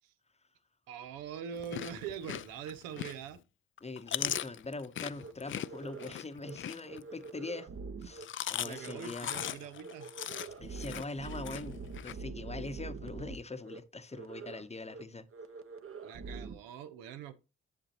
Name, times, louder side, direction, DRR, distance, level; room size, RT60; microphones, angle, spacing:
voice 1, 0.9-3.4 8.6-10.1 16.0-17.3, right 8 dB, 85° right, 0.7 m, -43 dB
Chewing mastication, 1.5-3.4 3.8-7.3 8.0-12.1, left 10 dB, 40° left, 0.4 m, -39 dB
voice 2, 3.8-7.7 8.0-9.4 10.6-15.3, left 3 dB, 20° left, 0.8 m, -42 dB
sound 1, 5.2-5.3 5.6-6.1 6.4-6.6 6.8-8.3 8.6-9.1 9.3-9.5 9.8-13.4 13.6-13.8 14.1-14.6 14.9-15.0 15.3-16.6, right 4 dB, 40° right, 0.9 m, -44 dB
7.5 x 6.6 x 2.9 m
hypercardioid pair, 45°, 33 cm